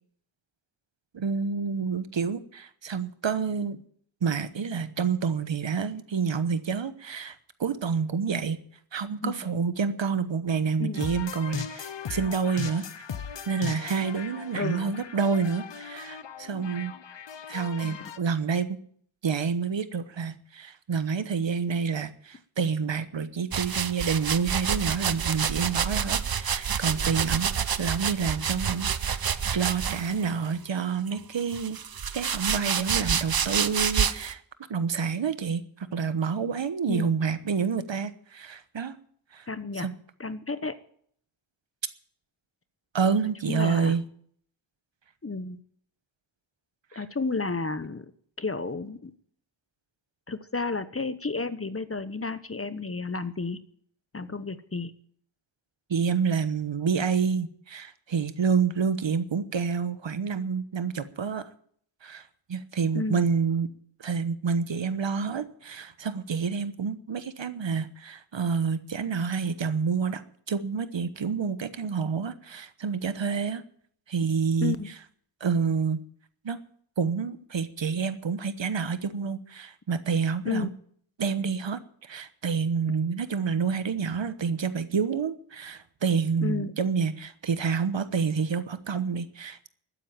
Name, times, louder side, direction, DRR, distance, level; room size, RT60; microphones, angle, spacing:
voice 1, 1.1-3.8 4.2-8.6 8.9-12.9 13.5-17.0 17.5-18.8 19.2-27.5 27.8-29.2 29.5-31.8 32.1-34.4 34.7-39.0 39.3-39.5 39.8-40.0 42.9-44.0 46.9-47.0 55.9-61.5 62.0-63.7 64.0-70.2 70.5-73.6 74.1-74.8 75.4-76.0 76.4-76.6 77.0-80.7 81.2-89.7, right 5 dB, 65° right, 12 dB, 1.1 m, -28 dB
sound 1, 11.0-18.2, left 7 dB, 65° left, 1.0 m, -38 dB
voice 2, 14.5-14.9 17.8-18.1 36.9-37.1 39.5-39.9 40.2-40.8 43.5-43.9 45.2-45.6 46.9-48.1 48.4-49.1 50.3-53.6 54.1-54.9 62.9-63.3 74.6-74.9 80.4-80.7 86.4-86.7, left 3 dB, 30° left, 13 dB, 1.0 m, -31 dB
sound 2, 23.5-30.3 31.1-34.3, right 7 dB, 50° right, 0.8 m, -28 dB
13.5 x 9.4 x 8.9 m, 0.62 s
wide cardioid pair, 65°, 48 cm